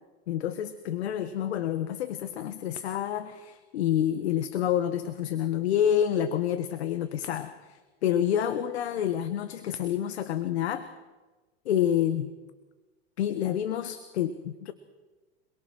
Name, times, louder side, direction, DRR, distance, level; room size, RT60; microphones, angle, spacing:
voice 1, 0.3-10.8 11.6-12.3 13.2-14.7, left 10 dB, 85° left, 10 dB, 1.7 m, -28 dB
28.0 x 21.5 x 6.2 m, 1.2 s
supercardioid pair, 115°, 32 cm